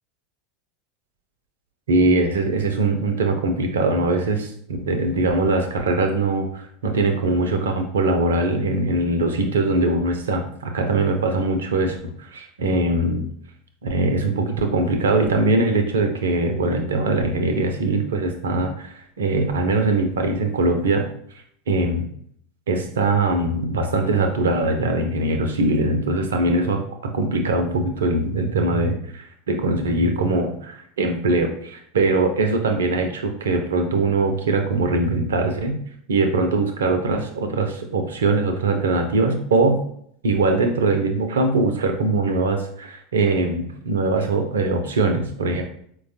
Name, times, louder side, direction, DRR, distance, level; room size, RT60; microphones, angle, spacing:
voice 1, 1.9-13.3 13.8-21.1 21.7-22.1 22.7-35.8 36.1-39.8 40.2-45.6, right 2 dB, 70° right, 5 dB, 0.5 m, -21 dB
4.5 x 2.2 x 2.7 m, 0.65 s
figure-of-eight pair, 80°, 0 cm